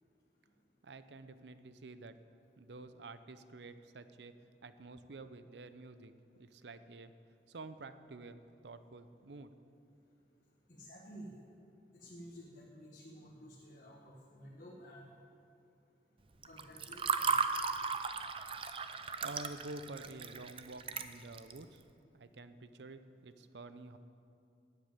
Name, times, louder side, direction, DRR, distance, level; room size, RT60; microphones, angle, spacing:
voice 1, 0.8-2.2 2.6-4.3 4.6-6.1 6.4-7.1 7.5-9.5 19.2-21.8 22.1-24.0, right 2 dB, 75° right, 11 dB, 0.7 m, -49 dB
voice 2, 10.7-11.3 11.9-15.1 16.4-17.3, equal, 45° left, -5 dB, 1.6 m, -52 dB
Water / Fill (with liquid), 16.4-21.6, right 5 dB, 30° right, 0.5 m, -36 dB
12.5 x 8.2 x 9.1 m, 2.6 s
head